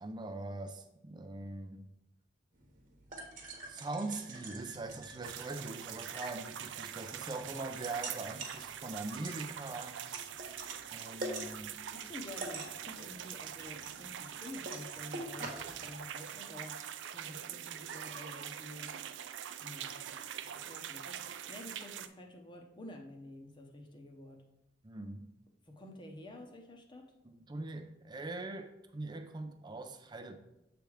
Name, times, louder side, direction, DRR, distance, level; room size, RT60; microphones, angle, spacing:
voice 1, 0.0-1.9 3.7-10.0 10.9-11.8 24.8-25.3 27.2-30.4, right 2 dB, 25° right, 0.5 m, -42 dB
sound 1, 2.5-15.9, right 2 dB, 45° right, 1.2 m, -46 dB
sound 2, 5.2-22.1, right 9 dB, 75° right, 0.4 m, -44 dB
voice 2, 11.9-19.0 19.6-20.2 20.5-24.4 25.7-27.1, left 1 dB, 25° left, 0.9 m, -50 dB
7.4 x 3.4 x 4.8 m
head